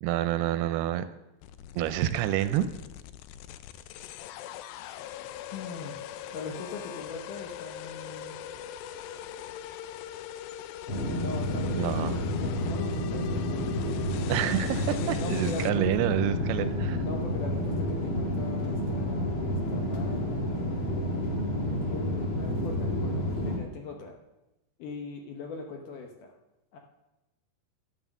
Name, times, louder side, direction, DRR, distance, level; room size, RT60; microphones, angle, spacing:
voice 1, 0.0-1.1 1.8-2.7 11.8-12.2 14.3-17.0, right 12 dB, 80° right, 11 dB, 2.4 m, -28 dB
sound 1, 1.4-15.7, left 11 dB, 85° left, 2.0 m, -42 dB
voice 2, 5.5-6.0 6.3-8.4 11.2-12.1 12.4-14.4 14.9-16.0 17.0-20.5 21.7-24.1 24.8-26.3 26.7-26.8, left 4 dB, 70° left, 2 dB, 2.1 m, -41 dB
sound 2, 10.9-23.6, left 1 dB, 45° left, 1.9 m, -30 dB
11.0 x 10.5 x 7.1 m, 0.97 s
omnidirectional pair, 4.9 m